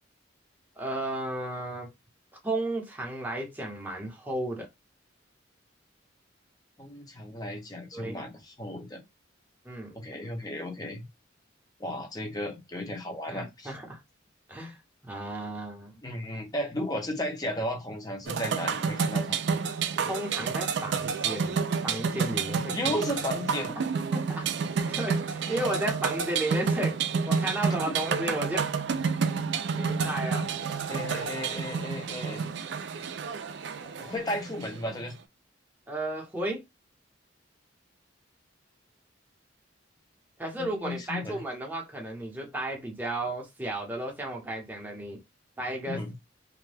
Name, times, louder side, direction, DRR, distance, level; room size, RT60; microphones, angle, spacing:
voice 1, 0.8-1.9 2.4-4.7 7.9-8.2 9.6-10.0 13.3-14.0 14.5-14.8 15.0-16.0 20.0-23.0 24.1-24.5 24.9-28.7 29.8-30.5 35.9-36.6 40.4-45.2 45.6-46.0, right 1 dB, 10° right, 0.8 m, -34 dB
voice 2, 6.8-9.0 9.9-11.0 11.8-13.7 16.0-19.4 22.7-23.7 25.5-25.8 27.9-28.0 30.9-32.4 34.0-35.2 40.6-41.4 45.8-46.1, left 1 dB, 20° left, 0.8 m, -34 dB
sound 1, 18.3-35.1, right 5 dB, 60° right, 0.3 m, -30 dB
2.6 x 2.1 x 3.3 m
head